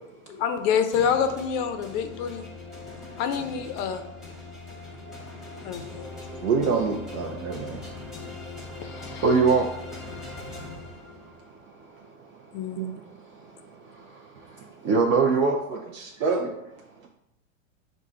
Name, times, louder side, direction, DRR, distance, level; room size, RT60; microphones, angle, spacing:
voice 1, 0.3-2.5 3.2-4.0 5.6-6.1 8.8-9.2 12.5-12.8, left 7 dB, 40° left, 8 dB, 0.4 m, -27 dB
sound 1, 0.9-11.5, left 3 dB, ahead, 0.9 m, -41 dB
voice 2, 5.8-6.3 7.3-7.5 7.8-7.9 8.5-15.6, right 4 dB, 30° right, 1 dB, 0.5 m, -28 dB
voice 3, 6.4-7.8 15.5-16.5, right 5 dB, 80° right, 0 dB, 0.7 m, -27 dB
5.3 x 2.5 x 3.7 m, 0.84 s
hypercardioid pair, 110°, 40 cm